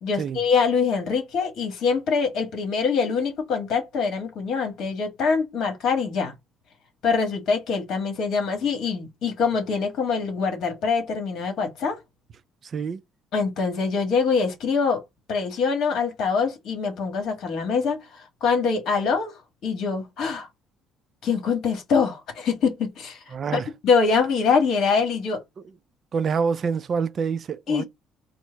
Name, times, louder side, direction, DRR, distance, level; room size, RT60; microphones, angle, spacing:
voice 1, 0.0-6.3 7.0-12.0 13.3-15.0 15.3-18.0 18.4-20.5 21.2-23.2 23.5-25.4 27.7-27.8, left 5 dB, 55° left, 1.5 m, -24 dB
voice 2, 23.3-23.7 26.1-27.8, right 6 dB, 35° right, 0.3 m, -26 dB
4.4 x 2.0 x 4.5 m
cardioid pair, 160°, 0 cm